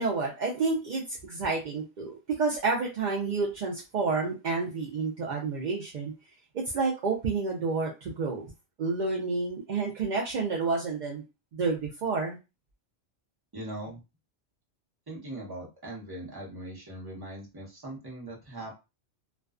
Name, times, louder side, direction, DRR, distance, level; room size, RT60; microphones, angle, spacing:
voice 1, 0.0-6.1 6.5-8.4 8.8-11.2 11.5-12.4, right 4 dB, 60° right, -2 dB, 0.5 m, -29 dB
voice 2, 13.5-14.0 15.1-18.8, right 1 dB, 20° right, -3 dB, 0.8 m, -40 dB
2.4 x 2.2 x 2.4 m, 0.27 s
omnidirectional pair, 1.2 m